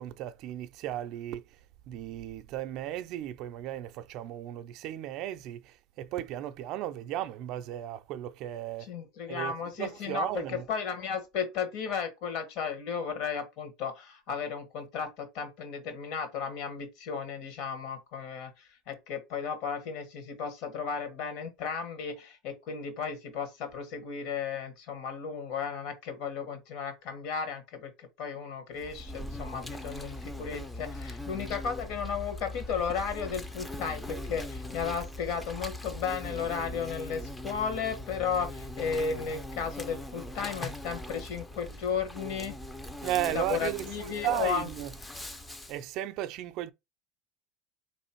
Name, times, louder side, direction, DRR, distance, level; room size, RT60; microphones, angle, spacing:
voice 1, 0.0-1.4 1.9-8.9 9.3-9.5 9.8-10.6 43.0-44.9 45.7-46.7, right 12 dB, 50° right, 0.4 m, -35 dB
voice 2, 8.8-42.5 43.3-44.7, left 6 dB, 60° left, 1.5 m, -34 dB
Insect, 28.8-45.8, left 1 dB, 10° left, 0.5 m, -40 dB
3.4 x 3.1 x 4.4 m
supercardioid pair, 135°, 0 cm